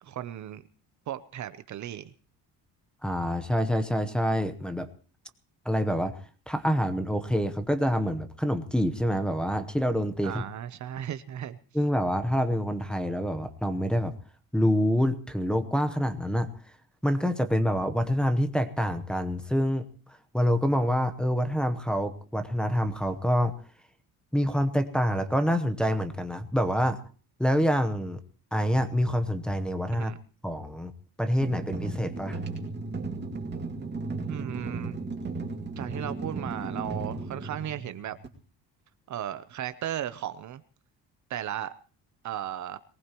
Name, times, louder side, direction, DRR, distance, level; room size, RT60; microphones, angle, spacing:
voice 1, 0.0-0.6 1.1-2.1 10.2-11.6 29.9-30.2 34.3-34.9 35.8-38.2 39.1-40.6 41.3-41.7 42.2-42.8, right 11 dB, 45° right, 12 dB, 0.7 m, -35 dB
voice 2, 3.0-4.9 5.6-10.4 11.7-14.1 14.5-16.5 17.0-23.5 24.3-27.0 27.4-28.2 28.5-30.1 30.4-30.9 31.2-32.4, equal, ahead, 6 dB, 0.9 m, -26 dB
sound 1, 31.4-38.3, right 3 dB, 25° right, 2.3 m, -35 dB
22.5 x 19.0 x 3.0 m, 0.40 s
cardioid pair, 175°, 40 cm